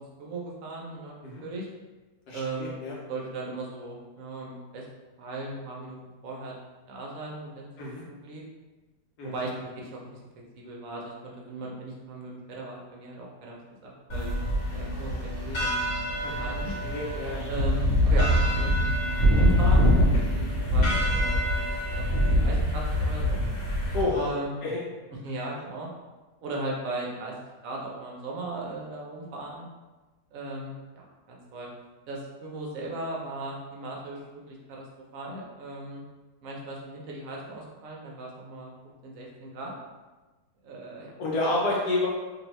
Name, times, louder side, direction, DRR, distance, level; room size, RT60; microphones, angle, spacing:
voice 1, 0.0-1.2 1.4-1.7 2.3-2.8 3.1-4.9 5.2-6.6 6.9-7.7 8.1-8.4 9.2-10.2 10.6-15.8 16.4-16.7 17.5-19.8 20.1-23.4 24.1-24.6 25.1-25.9 26.4-27.4 27.6-29.6 30.3-31.7 32.1-34.9 35.1-36.0 36.4-38.7 39.0-39.7 40.6-41.1, right 2 dB, 70° right, -2 dB, 0.8 m, -37 dB
voice 2, 2.3-2.9 7.8-8.0 9.2-9.3 16.2-17.5 23.9-24.3 24.6-24.8 41.2-42.1, left 2 dB, 70° left, -5 dB, 1.1 m, -29 dB
sound 1, 14.1-24.0, equal, 50° left, 1.1 m, -24 dB
2.7 x 2.7 x 3.0 m, 1.2 s
omnidirectional pair, 1.9 m